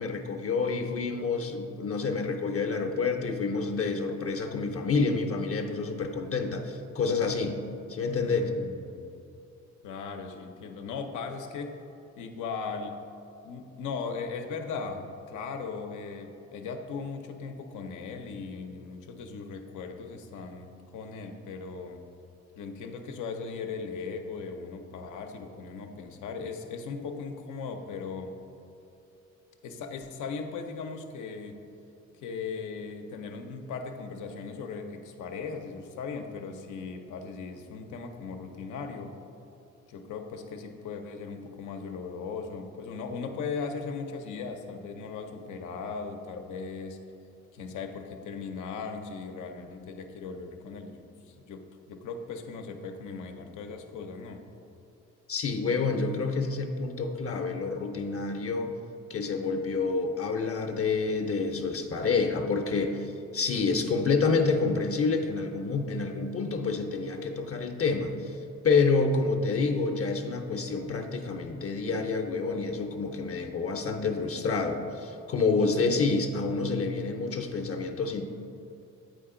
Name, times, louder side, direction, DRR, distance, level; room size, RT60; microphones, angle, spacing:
voice 1, 0.0-7.6 7.9-8.4 55.3-58.8 59.1-68.4 68.6-78.2, left 4 dB, 50° left, 4 dB, 0.7 m, -28 dB
voice 2, 8.2-9.1 9.8-11.8 12.2-13.0 13.4-22.0 22.6-28.4 29.6-31.6 32.1-39.2 39.9-47.0 47.5-54.4, left 5 dB, 90° left, 5 dB, 0.7 m, -38 dB
7.9 x 5.1 x 3.7 m, 2.8 s
supercardioid pair, 60°, 30 cm